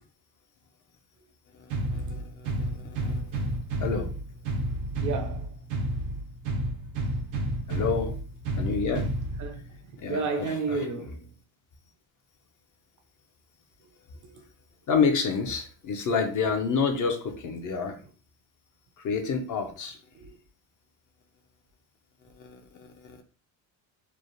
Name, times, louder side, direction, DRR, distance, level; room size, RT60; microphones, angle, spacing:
sound 1, 1.7-9.7, right 1 dB, 90° right, 0.8 m, -31 dB
voice 1, 1.9-2.2 2.6-3.2 3.8-4.1 7.7-8.2 8.6-9.1 10.0-10.8 14.9-18.0 19.0-20.0 22.4-23.2, left 5 dB, 40° left, 0.5 m, -28 dB
voice 2, 5.0-5.6 9.4-9.6 10.1-11.3 20.2-20.3, right 4 dB, 40° right, 0.5 m, -31 dB
3.1 x 2.0 x 2.5 m
cardioid pair, 115°, 49 cm